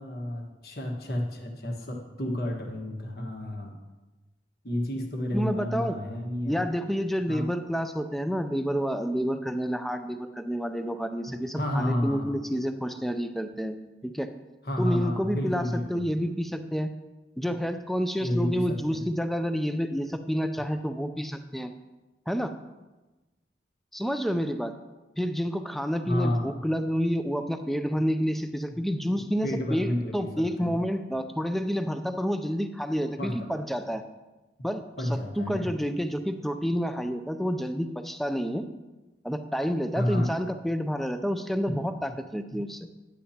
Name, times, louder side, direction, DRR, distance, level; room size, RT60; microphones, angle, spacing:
voice 1, 0.0-3.7 4.6-6.6 7.3-7.5 11.5-12.3 14.6-16.1 18.2-19.0 26.0-26.6 29.4-30.8 33.2-33.5 35.0-35.7 39.9-40.3, left 1 dB, 55° left, 1 dB, 1.3 m, -30 dB
voice 2, 5.3-6.0 6.5-13.8 14.0-14.3 14.8-16.9 17.4-21.7 22.3-22.5 23.9-24.7 25.2-34.0 34.6-38.7 39.2-42.9, equal, ahead, 8 dB, 0.4 m, -29 dB
10.0 x 9.4 x 2.8 m, 1.1 s
head